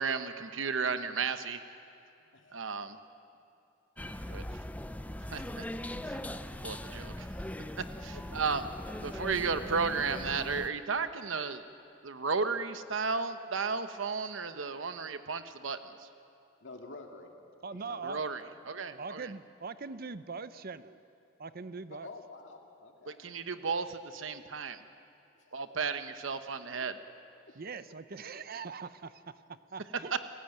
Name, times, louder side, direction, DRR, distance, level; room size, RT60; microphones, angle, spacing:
voice 1, 0.0-1.6 2.5-3.0 4.3-4.4 5.3-5.6 6.1-6.2 6.6-7.3 8.0-8.7 9.0-11.6 12.0-16.1 18.0-19.3 23.1-24.8 25.5-26.9, right 5 dB, 75° right, 10 dB, 1.0 m, -34 dB
voice 2, 2.3-2.8 8.1-8.2 16.6-17.3 17.9-18.4 18.9-19.0 22.0-23.2 23.5-23.6 25.4-25.8, left 3 dB, 65° left, 2 dB, 2.2 m, -49 dB
sound 1, 4.0-10.7, left 1 dB, 10° left, 0.6 m, -40 dB
voice 3, 17.6-18.3 19.0-21.0 21.4-22.1 27.5-29.3 29.7-30.1, right 4 dB, 50° right, 13 dB, 0.7 m, -41 dB
29.0 x 16.5 x 9.0 m, 2.6 s
head